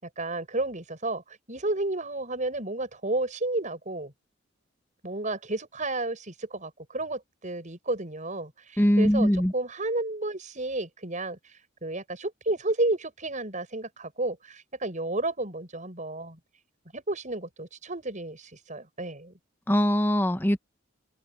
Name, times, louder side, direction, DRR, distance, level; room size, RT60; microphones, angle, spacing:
voice 1, 0.0-4.1 5.0-11.4 11.8-16.4 16.9-19.3, right 2 dB, 40° right, 7.5 m, -32 dB
voice 2, 8.8-9.5 19.7-20.6, equal, 10° left, 1.0 m, -22 dB
open air
head